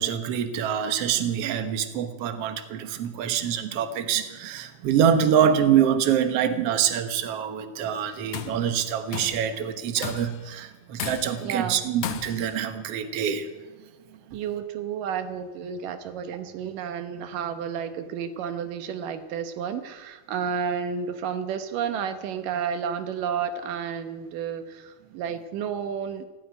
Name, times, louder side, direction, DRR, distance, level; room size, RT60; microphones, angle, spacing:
voice 1, 0.0-13.5 14.3-14.4, right 8 dB, 60° right, 9 dB, 1.8 m, -25 dB
Tools, 8.1-8.6 9.1-9.5 10.0-10.5 11.0-11.5 12.0-12.6, left 9 dB, 75° left, 1.3 m, -35 dB
voice 2, 11.4-11.8 14.3-26.3, right 7 dB, 75° right, 9 dB, 2.7 m, -31 dB
16.5 x 9.4 x 9.2 m, 1.2 s
omnidirectional pair, 3.9 m